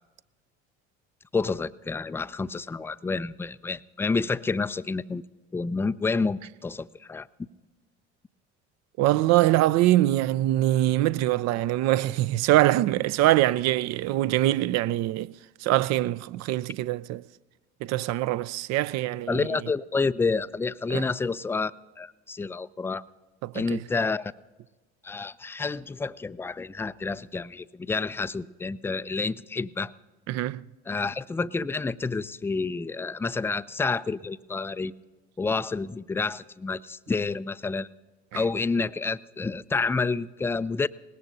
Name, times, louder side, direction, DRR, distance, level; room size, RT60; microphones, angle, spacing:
voice 1, 1.3-5.2 5.5-7.3 19.3-21.7 22.0-23.0 23.5-24.3 25.0-29.9 30.9-34.9 35.4-37.9 38.3-40.9, left 4 dB, 5° left, 0.3 m, -29 dB
voice 2, 9.0-15.3 15.6-17.2 17.8-19.5 20.9-21.0 23.4-23.8 30.3-30.6 38.3-38.4, right 15 dB, 50° right, 0.5 m, -23 dB
21.0 x 18.5 x 2.7 m
figure-of-eight pair, 60°, 35 cm